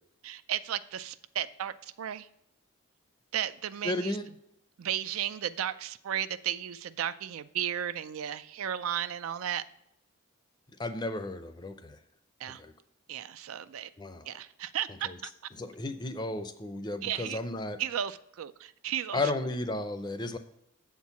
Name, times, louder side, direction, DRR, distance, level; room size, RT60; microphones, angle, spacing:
voice 1, 0.2-2.3 3.3-4.2 4.8-9.6 12.4-12.6 13.1-13.9 14.3-15.3 17.0-17.4 17.8-19.2, right 10 dB, 85° right, 14 dB, 0.4 m, -34 dB
voice 2, 3.8-4.3 10.8-12.0 12.6-12.7 14.0-14.3 15.0-15.2 15.6-17.8 19.1-20.4, left 2 dB, 20° left, 9 dB, 0.5 m, -33 dB
7.4 x 4.5 x 6.9 m, 0.79 s
head